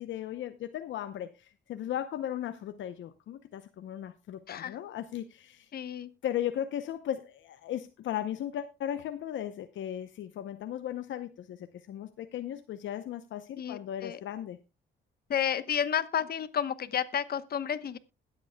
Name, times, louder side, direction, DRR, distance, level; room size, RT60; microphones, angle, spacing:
voice 1, 0.0-5.7 6.2-14.6, left 11 dB, 70° left, 9 dB, 0.8 m, -36 dB
voice 2, 5.7-6.1 13.6-14.2 15.3-18.0, left 9 dB, 50° left, 13 dB, 1.0 m, -31 dB
21.5 x 8.3 x 2.2 m, 0.25 s
cardioid pair, 90°, 20 cm